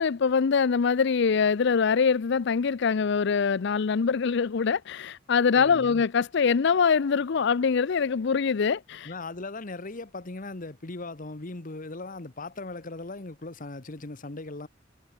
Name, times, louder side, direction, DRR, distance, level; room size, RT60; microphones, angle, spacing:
voice 1, 0.0-9.1, left 5 dB, 65° left, 0.5 m, -24 dB
voice 2, 5.6-6.0 9.0-14.7, left 2 dB, 45° left, 1.3 m, -38 dB
head